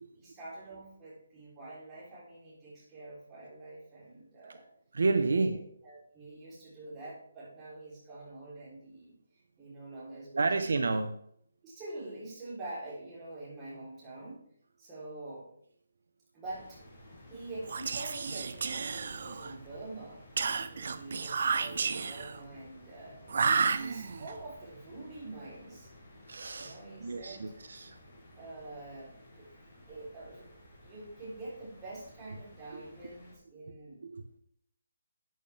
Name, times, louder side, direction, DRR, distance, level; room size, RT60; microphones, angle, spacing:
voice 1, 0.1-4.7 5.2-5.4 5.8-9.2 9.6-10.7 11.6-14.4 14.8-15.5 16.3-16.8 17.3-20.2 20.6-23.2 23.7-25.9 26.6-27.5 28.3-29.5 29.9-34.0, right 2 dB, 10° right, -7 dB, 3.8 m, -46 dB
voice 2, 4.9-5.6 10.3-11.2 26.3-28.0 32.7-32.8 34.0-34.4, right 3 dB, 70° right, 8 dB, 1.1 m, -30 dB
sound 1, 16.4-33.4, left 1 dB, 15° left, 5.2 m, -55 dB
Whispering, 17.6-19.6 20.4-22.4 23.3-24.3, right 5 dB, 50° right, 0.8 m, -31 dB
12.5 x 8.8 x 3.5 m, 0.67 s
hypercardioid pair, 175°, 0 cm